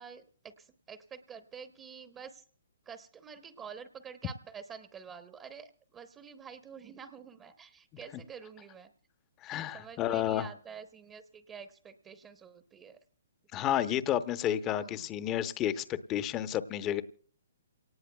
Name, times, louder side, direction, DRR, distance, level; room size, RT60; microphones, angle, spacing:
voice 1, 0.0-2.4 2.9-8.9 9.7-13.0 14.8-15.0, right 7 dB, 20° right, 8 dB, 0.8 m, -48 dB
voice 2, 9.4-10.5 13.5-17.0, left 11 dB, 20° left, 13 dB, 0.7 m, -31 dB
28.0 x 18.5 x 2.3 m, 0.43 s
hypercardioid pair, 145°, 0 cm